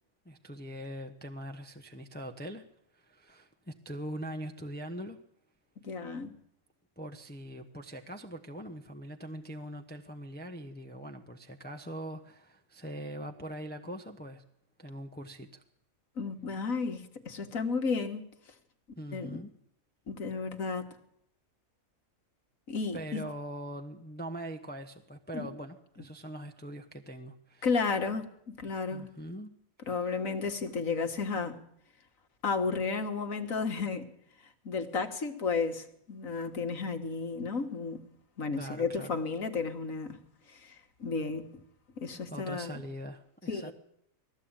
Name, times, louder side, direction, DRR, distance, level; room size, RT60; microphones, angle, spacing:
voice 1, 0.2-2.6 2.9-5.2 7.0-14.4 14.8-15.6 19.0-19.5 22.9-27.7 28.9-29.5 38.6-39.1 42.3-43.7, right 1 dB, 10° left, 1.0 m, -42 dB
voice 2, 5.8-6.4 16.2-18.2 19.1-19.4 20.1-20.9 22.7-23.2 25.3-25.5 27.6-29.1 29.9-31.6 32.4-34.1 34.7-38.0 38.4-40.2 40.5-41.5 42.0-42.8 43.5-43.7, left 4 dB, 70° left, 2.0 m, -33 dB
19.5 x 15.0 x 8.9 m
omnidirectional pair, 1.5 m